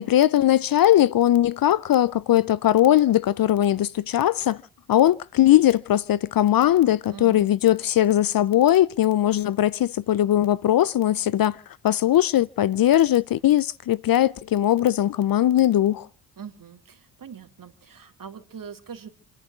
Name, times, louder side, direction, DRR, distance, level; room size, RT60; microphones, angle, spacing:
voice 1, 0.0-4.6 4.9-11.6 11.8-16.1, left 12 dB, 45° left, 0.7 m, -20 dB
voice 2, 7.1-7.5 16.4-19.1, right 7 dB, 45° right, 2.7 m, -42 dB
29.0 x 11.0 x 2.5 m
hypercardioid pair, 50°, 47 cm